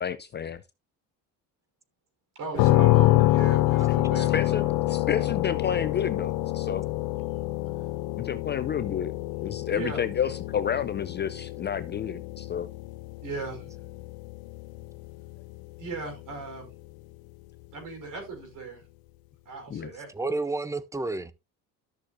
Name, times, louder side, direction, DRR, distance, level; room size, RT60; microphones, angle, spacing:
voice 1, 0.0-0.6 4.2-6.8 8.2-9.1 9.4-12.7 19.7-19.9, left 8 dB, 30° left, 0.5 m, -30 dB
voice 2, 2.4-4.7 9.7-10.0 13.2-13.6 15.8-16.7 17.7-18.8 19.5-20.1, right 4 dB, 60° right, 5.4 m, -37 dB
sound 1, 2.6-16.3, left 18 dB, 80° left, 0.6 m, -27 dB
voice 3, 20.1-21.3, right 2 dB, 10° right, 0.7 m, -30 dB
13.0 x 6.3 x 2.5 m
cardioid pair, 115°, 36 cm